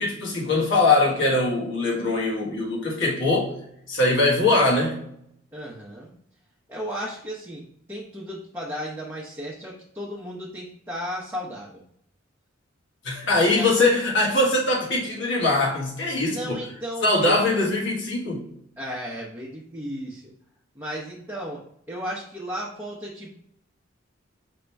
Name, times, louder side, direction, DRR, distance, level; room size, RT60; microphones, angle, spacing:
voice 1, 0.0-3.5 3.9-5.0 13.0-16.6 17.0-18.4, left 2 dB, 70° left, -3 dB, 1.6 m, -22 dB
voice 2, 5.5-6.1 6.7-7.6 7.9-11.8 13.5-13.9 16.3-17.4 18.8-20.2 20.7-21.6 21.9-23.3, equal, 10° right, -5 dB, 0.8 m, -34 dB
5.2 x 2.9 x 3.3 m, 0.70 s
head